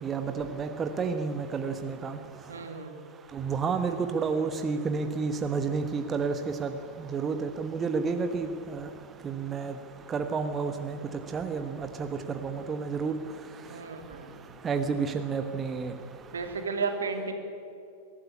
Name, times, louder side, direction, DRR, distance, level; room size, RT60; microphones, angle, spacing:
voice 1, 0.0-2.2 3.4-6.3 6.6-6.7 7.1-8.9 9.2-9.7 10.1-11.0 11.3-11.7 12.0-12.1 12.4-13.1 14.6-15.9, right 5 dB, 20° right, 7 dB, 1.2 m, -30 dB
voice 2, 2.5-3.0 13.6-14.5 16.3-17.3, right 4 dB, 70° right, 6 dB, 2.6 m, -34 dB
22.5 x 14.0 x 9.7 m, 2.6 s
figure-of-eight pair, 90°, 0 cm